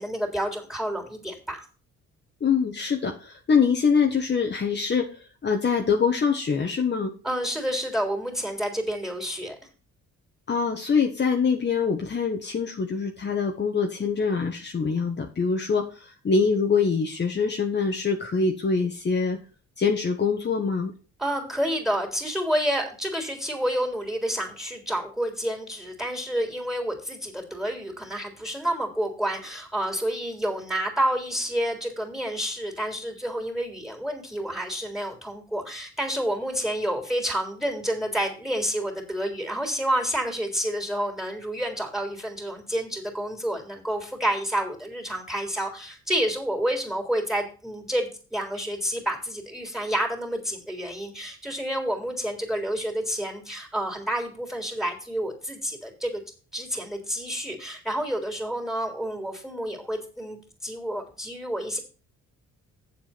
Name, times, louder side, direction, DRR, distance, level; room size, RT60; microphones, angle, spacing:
voice 1, 0.0-1.6 7.2-9.6 21.2-56.2 56.5-61.8, equal, ahead, 3 dB, 3.5 m, -29 dB
voice 2, 2.4-5.0 5.4-7.1 10.5-19.4 19.8-20.9, left 5 dB, 35° left, 2 dB, 1.4 m, -24 dB
7.5 x 7.4 x 5.9 m, 0.36 s
cardioid pair, 90°, 30 cm